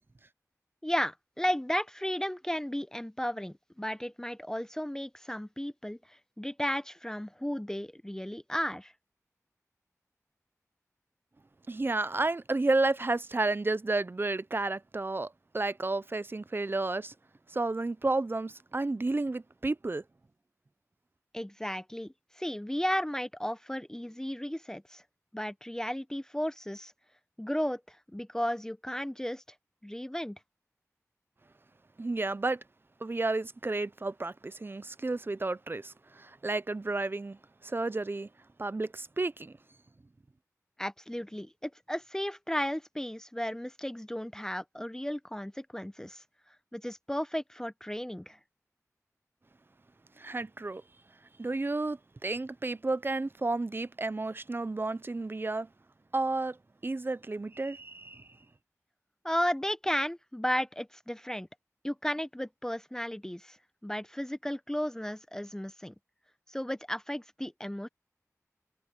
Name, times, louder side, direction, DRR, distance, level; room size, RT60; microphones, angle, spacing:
voice 1, 0.8-8.9 21.3-25.0 25.3-26.9 27.4-29.4 29.8-30.4 40.8-46.2 46.7-48.4 59.2-61.5 61.8-63.6 63.8-65.9 66.5-67.9, equal, 10° left, 0.7 m, -34 dB
voice 2, 11.7-17.1 17.5-20.0 32.0-32.6 33.0-38.3 38.6-39.6 50.2-50.8 51.4-55.7 56.1-56.6 56.8-58.3, right 2 dB, 40° right, 0.5 m, -31 dB
wide cardioid pair, 55°, 6 cm